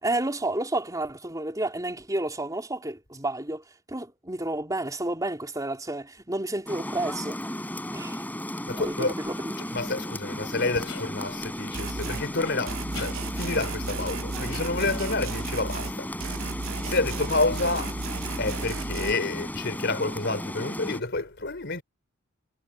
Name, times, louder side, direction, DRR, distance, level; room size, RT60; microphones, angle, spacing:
voice 1, 0.0-7.4 7.9-8.2 8.8-9.7, right 2 dB, 15° right, 3.5 m, -31 dB
Rain, 6.7-21.0, left 1 dB, 10° left, 5.4 m, -35 dB
voice 2, 8.7-9.1 9.7-16.2 16.8-18.0 18.4-21.8, left 3 dB, 55° left, 4.1 m, -29 dB
sound 1, 10.9-11.1 12.4-12.6 12.9-13.2 14.5-15.2, left 5 dB, 85° left, 3.0 m, -41 dB
sound 2, 11.7-12.3 12.7-19.1, right 4 dB, 80° right, 0.8 m, -34 dB
head